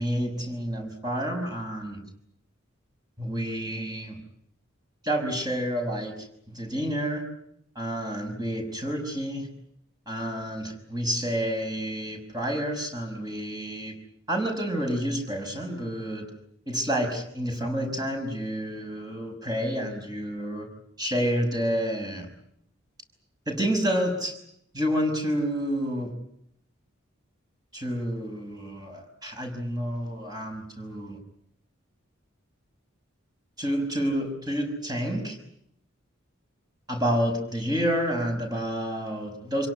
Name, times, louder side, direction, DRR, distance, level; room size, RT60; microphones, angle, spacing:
voice 1, 0.0-2.0 3.2-4.2 5.0-7.2 7.8-9.5 10.1-13.9 14.3-16.3 16.7-20.7 21.0-22.3 23.5-24.4 24.7-26.1 27.7-31.2 33.6-35.4 36.9-39.7, equal, 20° right, 3 dB, 5.7 m, -29 dB
27.0 x 17.5 x 9.9 m, 0.72 s
head